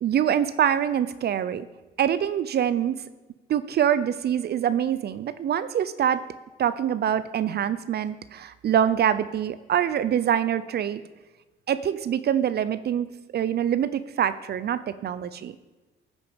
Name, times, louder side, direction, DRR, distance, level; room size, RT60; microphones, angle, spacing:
voice 1, 0.0-1.7 2.0-3.0 3.5-6.2 6.6-11.0 11.7-15.5, right 9 dB, 55° right, 14 dB, 0.5 m, -25 dB
14.0 x 6.0 x 5.0 m, 1.2 s
cardioid pair, 90°, 20 cm